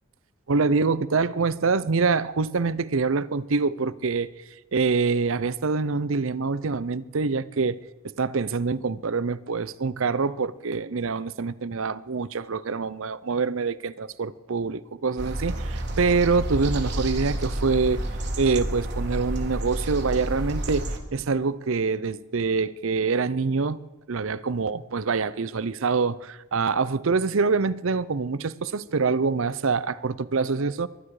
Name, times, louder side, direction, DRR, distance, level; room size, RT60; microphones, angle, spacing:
voice 1, 0.5-4.3 4.7-7.8 8.0-18.0 18.4-23.8 24.1-30.9, right 4 dB, 65° right, 0.6 m, -25 dB
sound 1, 15.2-21.0, right 1 dB, 50° right, 1.9 m, -30 dB
23.5 x 11.0 x 4.9 m
head